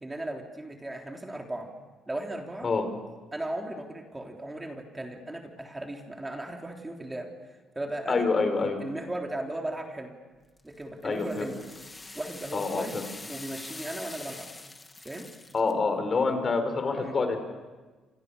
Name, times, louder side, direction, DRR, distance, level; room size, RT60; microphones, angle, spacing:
voice 1, 0.0-1.7 2.1-2.7 3.3-7.3 7.8-8.3 8.6-10.1 10.6-11.6 12.1-13.0 13.3-14.5 15.0-15.3 17.0-17.2, right 1 dB, 15° right, 2 dB, 3.5 m, -36 dB
voice 2, 8.1-8.8 11.0-11.5 12.5-13.0 15.5-17.4, left 4 dB, 40° left, 7 dB, 5.1 m, -26 dB
sound 1, 10.6-15.7, left 2 dB, 20° left, 2.4 m, -44 dB
29.0 x 27.0 x 6.8 m, 1.3 s
cardioid pair, 90°, 0 cm